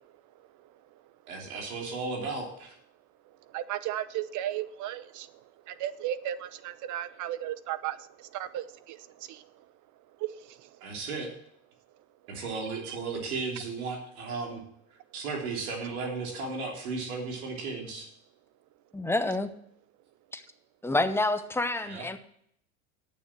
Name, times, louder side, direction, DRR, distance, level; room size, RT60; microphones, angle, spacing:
voice 1, 1.3-2.7 10.8-11.3 12.3-14.6 15.1-18.1 21.9-22.0, right 4 dB, 85° right, 1 dB, 3.1 m, -35 dB
voice 2, 3.5-5.3 5.7-9.4 10.2-10.6 12.8-13.0, right 12 dB, 45° right, 15 dB, 0.8 m, -35 dB
voice 3, 18.9-19.5 20.3-20.4 20.8-22.2, left 2 dB, 5° left, 9 dB, 0.8 m, -28 dB
8.8 x 7.2 x 7.6 m, 0.68 s
supercardioid pair, 105°, 42 cm